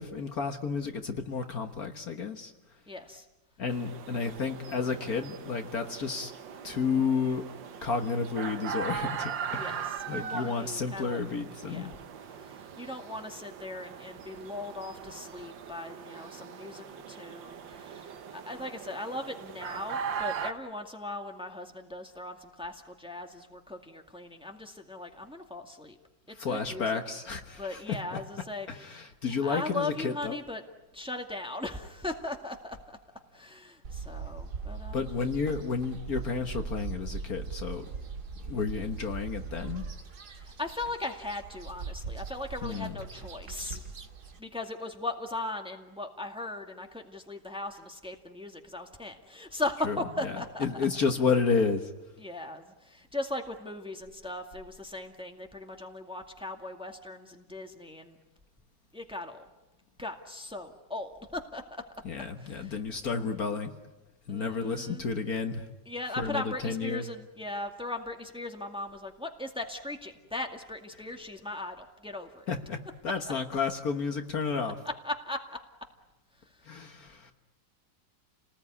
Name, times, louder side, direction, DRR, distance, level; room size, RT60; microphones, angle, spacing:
voice 1, 0.0-2.5 3.6-6.3 6.6-7.4 7.8-12.0 26.3-28.2 28.7-30.4 34.9-37.9 38.4-39.8 42.6-43.1 49.8-51.9 62.0-63.7 64.3-65.7 66.1-67.1 70.9-71.2 72.5-74.8 76.7-77.3, left 5 dB, 55° left, 6 dB, 1.7 m, -31 dB
voice 2, 2.9-3.3 9.5-11.2 11.6-11.9 12.4-26.0 26.5-27.0 27.6-29.1 29.4-30.6 30.9-33.0 33.3-35.1 40.3-43.9 44.4-50.7 52.2-58.2 58.9-59.5 60.0-61.8 62.4-62.8 64.3-65.0 65.9-72.5 75.0-75.6 76.5-76.6, left 2 dB, 5° right, 3 dB, 1.9 m, -38 dB
sound 1, 3.7-20.5, right 7 dB, 85° right, 1.9 m, -40 dB
sound 2, 33.8-44.4, right 5 dB, 60° right, 2.4 m, -40 dB
30.0 x 19.5 x 9.6 m, 1.1 s
omnidirectional pair, 2.0 m